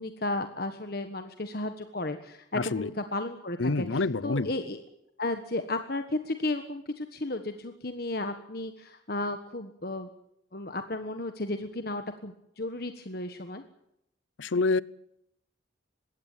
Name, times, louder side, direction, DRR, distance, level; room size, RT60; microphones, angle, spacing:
voice 1, 0.0-4.8 5.2-10.1 10.5-13.6, left 2 dB, 50° left, 1.4 m, -34 dB
voice 2, 2.5-2.9 3.6-4.5 14.4-14.8, left 3 dB, 85° left, 0.8 m, -27 dB
21.5 x 16.5 x 9.1 m
head